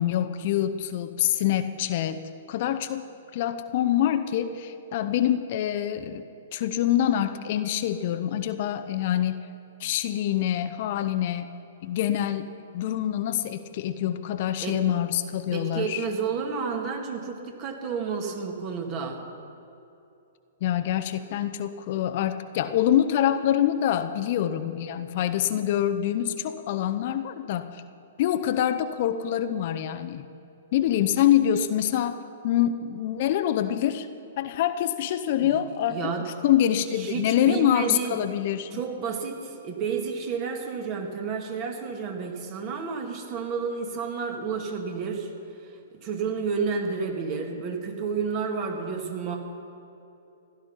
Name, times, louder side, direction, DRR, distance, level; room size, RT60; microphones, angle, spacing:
voice 1, 0.0-2.2 2.5-3.0 3.3-6.2 6.5-9.4 9.8-11.5 11.8-12.5 12.7-16.0 20.6-27.8 28.2-30.3 30.7-34.1 34.4-38.7, left 11 dB, 45° left, 9 dB, 0.7 m, -25 dB
voice 2, 14.6-14.9 15.5-19.2 35.4-35.6 35.9-36.3 37.0-38.2 38.7-45.3 45.9-49.4, right 5 dB, 35° right, 2 dB, 2.2 m, -31 dB
16.0 x 11.5 x 5.7 m, 2.8 s
figure-of-eight pair, 115°, 0 cm